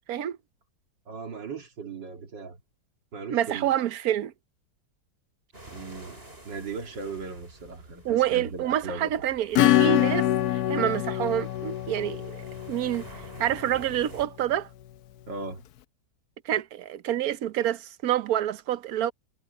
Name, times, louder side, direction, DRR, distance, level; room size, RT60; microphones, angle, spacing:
voice 1, 1.1-2.6 3.1-3.7 5.7-9.1 15.3-15.6, right 4 dB, 80° right, 2.9 m, -38 dB
voice 2, 3.3-4.3 8.0-13.1 13.4-14.7 16.4-19.1, right 11 dB, 60° right, 1.2 m, -27 dB
sound 1, 5.5-14.3, right 1 dB, 30° right, 7.0 m, -49 dB
Acoustic guitar / Strum, 9.5-13.8, left 13 dB, 70° left, 1.0 m, -25 dB
omnidirectional pair, 1.9 m